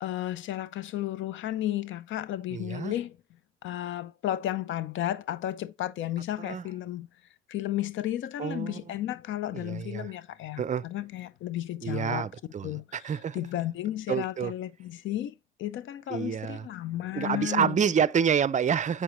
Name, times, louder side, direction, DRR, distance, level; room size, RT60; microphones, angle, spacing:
voice 1, 0.0-3.2 3.6-7.1 7.5-12.3 12.6-17.8, left 13 dB, 75° left, 0.6 m, -33 dB
voice 2, 2.5-2.9 6.4-6.6 8.4-8.8 9.5-10.1 10.6-10.8 11.8-13.5 14.1-14.5 16.1-16.6 17.1-19.0, right 7 dB, 40° right, 0.5 m, -28 dB
7.8 x 6.2 x 3.0 m
cardioid pair, 90°, 20 cm